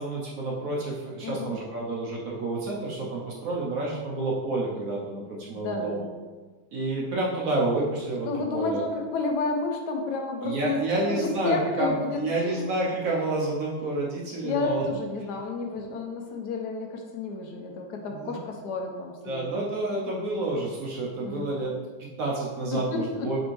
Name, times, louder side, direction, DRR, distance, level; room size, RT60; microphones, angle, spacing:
voice 1, 0.0-6.0 6.7-8.8 10.4-14.8 18.1-18.4 19.2-21.7 22.0-23.4, right 2 dB, 65° right, -4 dB, 1.0 m, -29 dB
voice 2, 1.2-1.6 5.5-6.2 8.2-10.8 11.1-12.6 14.4-19.4 21.2-21.5 22.7-23.3, left 3 dB, 75° left, 2 dB, 1.1 m, -31 dB
5.0 x 3.4 x 3.1 m, 1.3 s
omnidirectional pair, 1.9 m